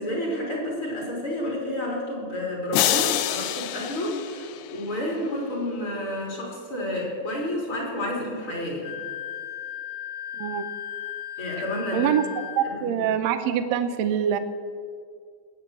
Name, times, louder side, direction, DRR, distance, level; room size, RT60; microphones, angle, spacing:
voice 1, 0.0-8.9 11.4-13.1, left 1 dB, 40° left, -3 dB, 4.2 m, -30 dB
sound 1, 2.7-5.1, left 12 dB, 80° left, 2.1 m, -27 dB
Wind instrument woodwind instrument, 8.8-12.7, left 10 dB, 65° left, 1.9 m, -36 dB
voice 2, 11.9-14.4, right 9 dB, 70° right, 9 dB, 1.8 m, -25 dB
20.0 x 8.5 x 6.5 m, 2.1 s
omnidirectional pair, 3.6 m